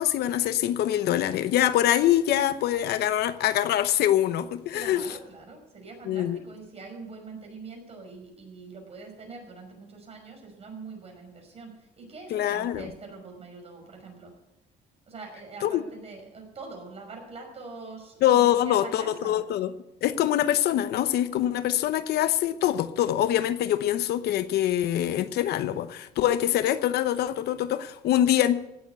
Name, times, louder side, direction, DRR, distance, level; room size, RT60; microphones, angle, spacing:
voice 1, 0.0-5.1 6.1-6.4 12.3-12.9 15.6-15.8 18.2-19.7 20.0-28.7, left 12 dB, 70° left, 0.9 m, -24 dB
voice 2, 4.7-14.4 15.1-19.4, right 3 dB, 35° right, 5.5 m, -43 dB
16.5 x 7.3 x 8.0 m
cardioid pair, 110°, 17 cm